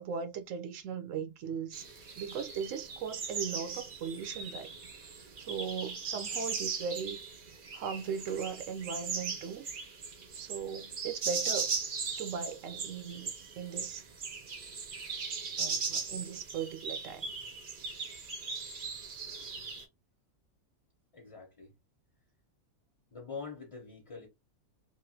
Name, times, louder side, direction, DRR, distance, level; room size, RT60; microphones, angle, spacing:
voice 1, 0.0-1.9 2.2-4.7 5.4-7.2 7.7-9.6 10.3-11.7 12.2-14.1 15.1-15.3 15.6-17.3, right 6 dB, 75° right, 1.0 m, -38 dB
sound 1, 1.7-19.8, right 5 dB, 50° right, 0.7 m, -39 dB
voice 2, 21.1-21.7 23.1-24.3, left 4 dB, 30° left, 0.8 m, -44 dB
3.1 x 2.6 x 2.7 m
omnidirectional pair, 1.4 m